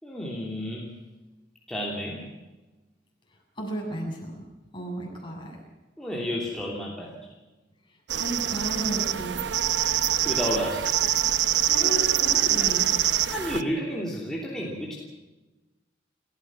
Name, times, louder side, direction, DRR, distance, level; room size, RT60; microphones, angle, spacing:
voice 1, 0.0-1.0 1.7-2.3 6.0-7.3 10.2-11.0 13.3-14.9, equal, 5° left, -4 dB, 3.0 m, -31 dB
voice 2, 3.6-4.4 4.7-5.6 7.9-9.4 11.3-12.9, right 1 dB, 30° left, -1 dB, 7.5 m, -34 dB
sound 1, 8.1-13.6, right 11 dB, 80° right, 0.9 m, -24 dB
29.5 x 14.5 x 6.2 m, 1.2 s
head